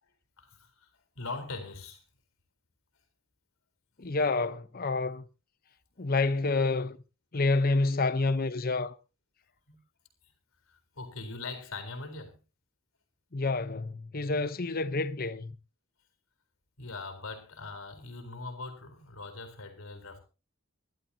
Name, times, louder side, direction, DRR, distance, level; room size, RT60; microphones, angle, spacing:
voice 1, 0.4-2.0 9.7-9.8 10.7-12.4 16.8-20.2, left 3 dB, 75° left, 4.1 m, -41 dB
voice 2, 4.0-5.2 6.0-7.0 7.3-8.9 13.3-15.5, left 3 dB, 45° left, 0.9 m, -28 dB
23.0 x 12.0 x 2.8 m
head